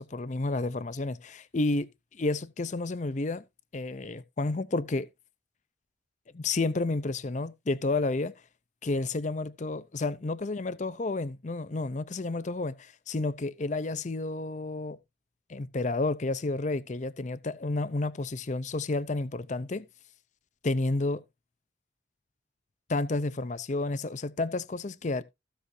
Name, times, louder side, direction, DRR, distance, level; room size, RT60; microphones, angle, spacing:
voice 1, 0.0-1.9 2.2-3.4 3.7-5.1 6.3-8.3 8.8-15.0 15.5-19.9 20.6-21.2 22.9-25.2, left 2 dB, 40° left, 0.5 m, -31 dB
16.0 x 6.2 x 2.7 m
head